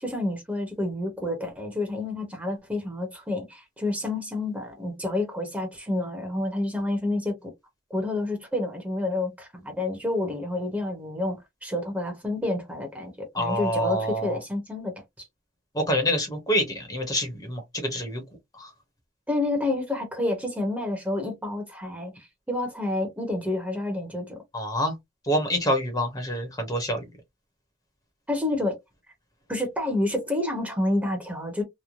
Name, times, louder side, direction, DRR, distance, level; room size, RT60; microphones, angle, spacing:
voice 1, 0.0-7.5 7.9-15.3 19.3-24.4 28.3-28.8 29.5-31.6, left 2 dB, 10° right, 0.8 m, -29 dB
voice 2, 13.3-14.4 15.7-18.2 18.6-18.7 24.5-25.0 25.2-27.0, equal, 20° left, 0.9 m, -26 dB
3.0 x 2.1 x 2.5 m
head